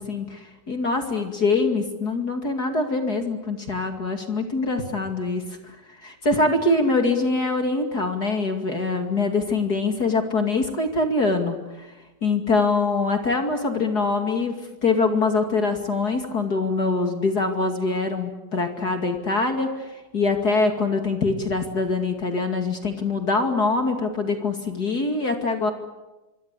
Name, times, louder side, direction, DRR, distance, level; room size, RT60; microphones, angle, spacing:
voice 1, 0.0-5.8 6.0-11.9 12.2-14.5 14.8-25.7, left 3 dB, 35° left, 5 dB, 2.7 m, -24 dB
27.0 x 23.5 x 8.3 m, 1.1 s
omnidirectional pair, 3.3 m